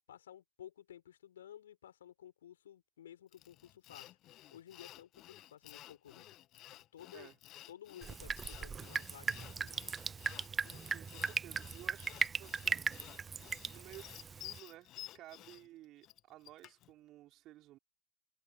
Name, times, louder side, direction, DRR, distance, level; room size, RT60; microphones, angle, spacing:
voice 1, 0.1-4.2 4.5-6.4 6.9-7.4 7.7-9.8, left 10 dB, 60° left, 5.4 m, -55 dB
Sawing, 3.3-16.9, left 15 dB, 35° left, 2.0 m, -54 dB
Drip, 8.0-14.6, right 6 dB, 15° right, 0.8 m, -38 dB
voice 2, 10.8-12.9 13.7-17.8, right 15 dB, 35° right, 5.7 m, -55 dB
figure-of-eight pair, 90°, 0 cm